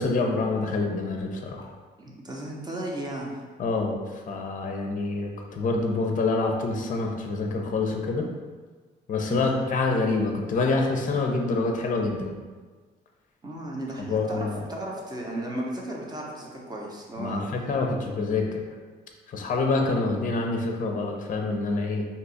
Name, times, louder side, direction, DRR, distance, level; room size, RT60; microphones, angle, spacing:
voice 1, 0.0-1.7 3.6-8.3 9.1-12.3 14.0-14.6 17.2-18.6 19.3-22.1, left 3 dB, 40° left, 2 dB, 0.5 m, -26 dB
voice 2, 2.0-3.3 9.3-9.5 13.4-17.5, right 1 dB, 20° right, -2 dB, 0.7 m, -34 dB
2.7 x 2.3 x 3.9 m, 1.4 s
cardioid pair, 90°, 20 cm